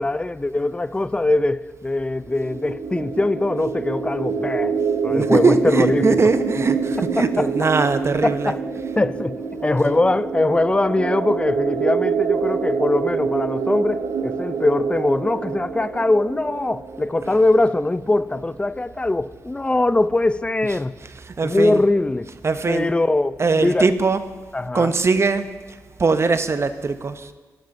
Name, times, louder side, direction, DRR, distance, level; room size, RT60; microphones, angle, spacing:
voice 1, 0.0-6.2 7.2-7.5 8.2-8.6 9.0-21.0 21.4-22.3 22.7-23.9 24.5-24.9, left 2 dB, 15° left, 0.4 m, -21 dB
sound 1, 2.2-17.9, right 5 dB, 85° right, 0.5 m, -26 dB
voice 2, 5.1-8.6 17.3-17.4 20.6-21.8 22.4-22.9 23.4-24.3 24.7-25.5 26.0-27.3, right 4 dB, 45° right, 0.6 m, -21 dB
13.0 x 10.5 x 2.6 m
cardioid pair, 50°, 6 cm